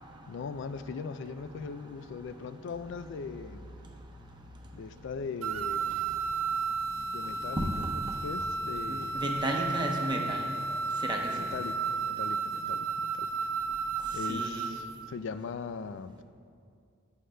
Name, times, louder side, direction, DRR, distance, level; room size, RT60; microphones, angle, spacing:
voice 1, 0.3-3.7 4.7-6.0 6.9-9.2 11.4-13.3 14.1-16.2, left 5 dB, 60° left, 12 dB, 0.3 m, -40 dB
sound 1, 5.4-15.0, right 4 dB, 85° right, 0.4 m, -33 dB
voice 2, 8.9-10.4 11.0-11.4 14.3-14.7, right 1 dB, 20° right, 1 dB, 0.8 m, -33 dB
18.5 x 6.4 x 2.2 m, 2.4 s
head